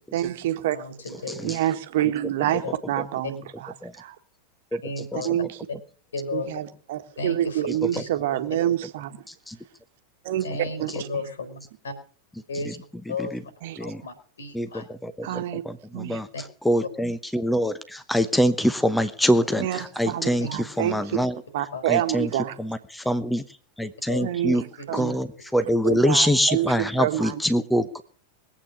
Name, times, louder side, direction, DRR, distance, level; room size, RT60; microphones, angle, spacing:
voice 1, 0.1-0.8 1.4-4.2 5.2-5.5 6.3-9.2 10.2-10.5 10.8-10.9 13.6-13.8 15.2-15.6 15.9-16.2 19.6-21.0 21.5-22.6 24.2-25.2 25.8-27.4, right 12 dB, 55° right, 1.5 m, -27 dB
voice 2, 0.7-1.4 2.6-2.7 4.8-5.3 6.1-6.5 7.2-7.7 7.9-8.1 10.4-11.9 12.5-13.5 13.8-14.9 16.3-16.4 20.4-20.5 21.7-21.8 24.1-24.9, left 3 dB, 70° left, 4.0 m, -34 dB
voice 3, 1.3-1.6 3.8-3.9 4.7-4.8 5.2-5.3 7.7-8.0 9.3-9.6 12.7-12.8 13.2-13.4 13.8-14.0 14.5-16.3 16.6-21.4 21.9-22.3 22.6-23.4 23.8-24.6 24.9-28.0, equal, 5° left, 0.9 m, -24 dB
21.5 x 8.7 x 7.1 m
figure-of-eight pair, 90°, 0 cm